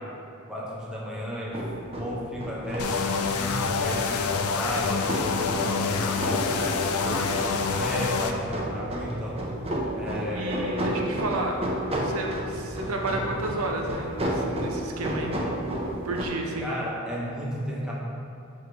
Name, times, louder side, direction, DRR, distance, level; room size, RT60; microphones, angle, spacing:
voice 1, 0.5-7.1 7.4-9.5 9.9-10.9 16.6-17.9, equal, 5° right, -6 dB, 1.0 m, -34 dB
sound 1, 1.5-16.3, equal, 25° right, 0.7 m, -32 dB
sound 2, 2.8-8.3, left 5 dB, 80° left, 0.4 m, -27 dB
voice 2, 10.3-11.6 12.0-15.4 16.0-16.8, right 2 dB, 75° right, 1 dB, 0.7 m, -31 dB
7.2 x 3.2 x 4.7 m, 2.5 s
head